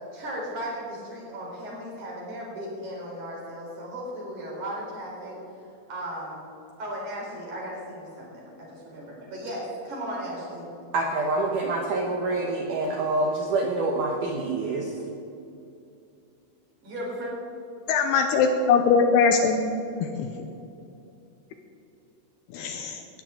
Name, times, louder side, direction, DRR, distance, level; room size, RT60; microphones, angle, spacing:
voice 1, 0.1-5.4 5.9-6.4 6.8-10.7 16.8-17.3, equal, 45° right, -4 dB, 5.2 m, -36 dB
voice 2, 10.9-14.9, right 2 dB, 75° right, 1 dB, 1.9 m, -26 dB
voice 3, 17.9-19.6 20.0-20.3 22.5-23.0, left 5 dB, 75° left, 5 dB, 2.6 m, -21 dB
19.5 x 14.0 x 3.8 m, 2.7 s
omnidirectional pair, 5.2 m